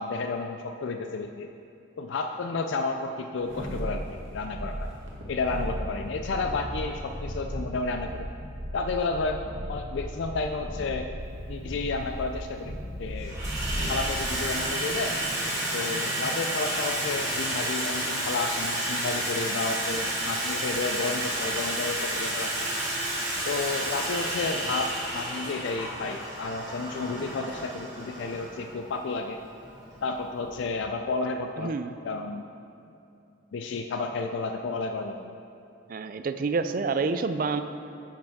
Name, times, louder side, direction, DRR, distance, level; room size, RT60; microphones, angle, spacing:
voice 1, 0.0-1.5 2.0-4.9 5.3-8.3 8.7-9.4 9.7-11.1 11.5-13.4 13.9-15.2 15.7-22.7 23.5-29.4 30.0-31.8 32.0-32.4 33.5-35.4, left 3 dB, 65° left, 5 dB, 0.3 m, -31 dB
sound 1, 3.4-14.1 14.5-14.6, equal, 75° right, 1.5 m, -36 dB
Water tap faucet / Sink (filling or washing), 11.3-11.4 12.4-12.8 13.1-30.7, right 1 dB, 15° right, 1.5 m, -31 dB
voice 2, 31.6-32.0 35.9-37.6, right 4 dB, 45° right, 10 dB, 0.3 m, -28 dB
9.1 x 7.5 x 3.6 m, 2.6 s
head